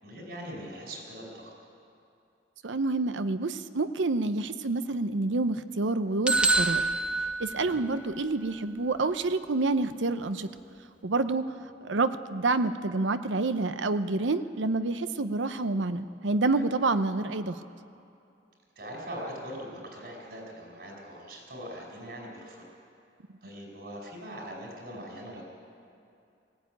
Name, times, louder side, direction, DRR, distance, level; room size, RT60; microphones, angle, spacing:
voice 1, 0.0-1.5 7.6-7.8 16.5-16.6 18.8-22.7 23.4-25.4, equal, 60° right, -1 dB, 5.2 m, -41 dB
voice 2, 2.6-6.8 7.4-10.5 11.0-11.4 11.8-17.6, right 3 dB, 90° right, 11 dB, 0.7 m, -28 dB
Shop Bell, 6.3-8.2, right 2 dB, 5° right, 0.5 m, -26 dB
18.0 x 15.5 x 9.1 m, 2.6 s
head